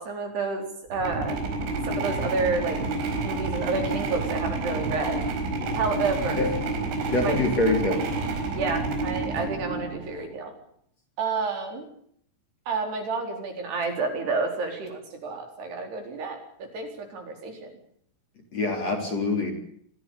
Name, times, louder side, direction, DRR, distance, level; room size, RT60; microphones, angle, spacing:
voice 1, 0.0-1.4 1.9-2.8 3.2-5.2 5.8-6.5 7.2-7.4 8.5-10.5 11.2-11.9 12.7-17.7, right 4 dB, 55° right, 4 dB, 6.0 m, -30 dB
sound 1, 0.9-10.3, right 3 dB, 75° right, 7.1 m, -29 dB
voice 2, 7.1-8.1 18.5-19.5, left 2 dB, 35° left, 4 dB, 4.5 m, -24 dB
25.5 x 16.0 x 8.6 m, 0.66 s
omnidirectional pair, 5.6 m